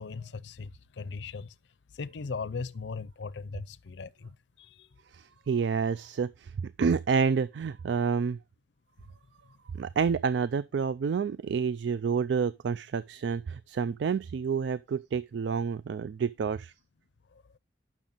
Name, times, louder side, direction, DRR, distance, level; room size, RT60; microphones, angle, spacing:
voice 1, 0.0-1.5 1.9-4.9, left 4 dB, 80° left, 0.5 m, -38 dB
voice 2, 5.1-8.4 9.8-16.7, right 6 dB, 80° right, 0.3 m, -29 dB
8.8 x 6.1 x 3.9 m
head